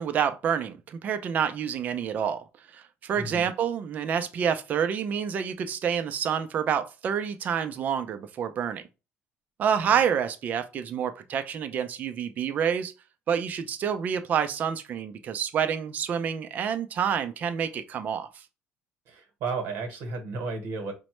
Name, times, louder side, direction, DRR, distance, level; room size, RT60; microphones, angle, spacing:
voice 1, 0.0-2.4 2.7-8.8 9.6-12.9 13.3-18.4, right 8 dB, 40° right, 0.5 m, -28 dB
voice 2, 19.1-20.9, right 4 dB, 65° right, 1.1 m, -33 dB
5.2 x 2.1 x 3.0 m
cardioid pair, 155°, 4 cm